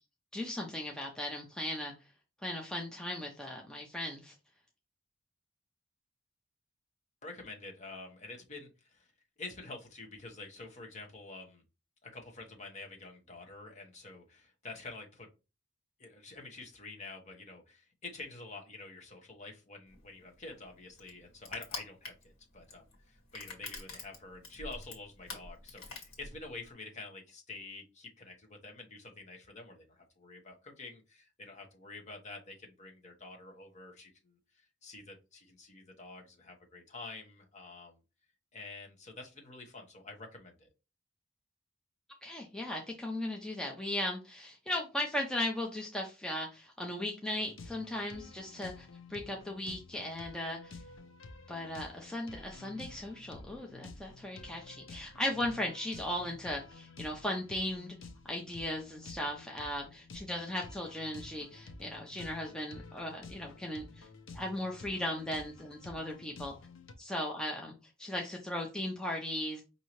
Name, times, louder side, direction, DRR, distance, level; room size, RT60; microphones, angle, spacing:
voice 1, 0.3-1.9 2.4-4.3 42.2-50.8 51.5-58.0 58.2-64.1 64.3-66.5 67.0-69.6, left 1 dB, 5° left, -1 dB, 0.5 m, -37 dB
voice 2, 7.2-9.1 9.4-11.6 12.0-15.3 16.0-38.0 38.5-40.7, left 3 dB, 35° left, 1 dB, 1.0 m, -48 dB
Crushing, 19.9-26.7, left 3 dB, 90° left, 1.6 m, -46 dB
sound 1, 47.3-66.9, left 3 dB, 75° left, 0.7 m, -51 dB
5.3 x 2.7 x 3.0 m, 0.29 s
head